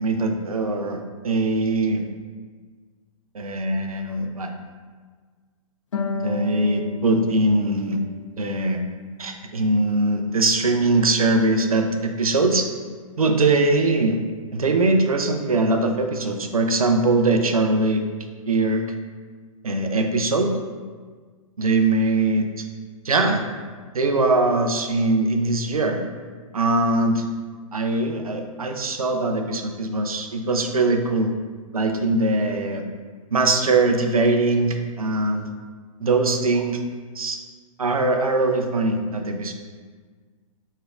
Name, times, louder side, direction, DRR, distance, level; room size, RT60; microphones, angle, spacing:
voice 1, 0.0-2.0 3.3-4.5 6.2-8.0 8.4-8.8 9.2-12.7 13.2-14.2 14.5-18.0 18.5-18.9 19.6-20.6 21.6-22.7 23.0-23.4 23.9-26.0 26.5-27.2 27.7-31.3 31.7-32.8 33.3-35.5 36.0-36.8 37.2-37.4 37.8-39.5, right 2 dB, 75° right, 5 dB, 0.5 m, -21 dB
Harp, 5.9-9.3 9.7-10.7, left 3 dB, 60° left, 0.6 m, -33 dB
4.6 x 3.2 x 2.4 m, 1.5 s
figure-of-eight pair, 120°, 19 cm